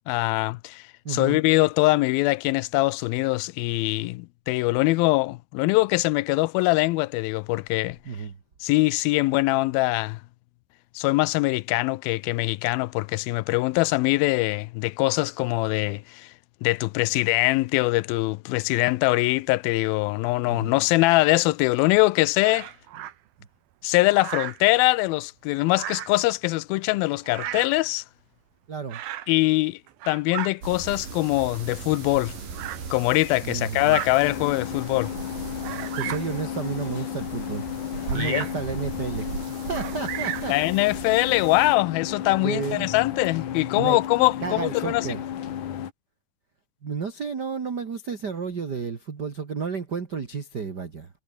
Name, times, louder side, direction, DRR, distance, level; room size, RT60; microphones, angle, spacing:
voice 1, 0.1-8.0 8.6-10.2 11.0-16.3 16.6-22.7 23.8-28.0 29.3-29.8 30.1-32.4 32.9-35.1 38.1-38.5 40.5-45.1, left 20 dB, 85° left, 2.4 m, -23 dB
voice 2, 1.0-1.4 8.1-8.4 20.5-20.7 28.7-29.0 33.4-34.0 35.9-37.6 38.1-39.3 39.6-40.5 42.4-42.9 43.8-44.0 44.4-45.2 46.8-51.1, right 5 dB, 35° right, 2.0 m, -31 dB
Bird vocalization bird call bird song, 22.4-23.1 24.1-24.7 25.7-26.2 27.2-27.8 28.9-29.3 29.9-30.5 31.4-31.5 32.5-32.8 33.8-34.1 34.8-34.9 35.6-36.3 38.1-38.6 39.7-40.6, right 12 dB, 80° right, 3.2 m, -34 dB
sound 1, 30.6-41.8, right 5 dB, 65° right, 6.5 m, -38 dB
sound 2, 34.2-45.9, left 10 dB, 60° left, 3.2 m, -33 dB
omnidirectional pair, 4.2 m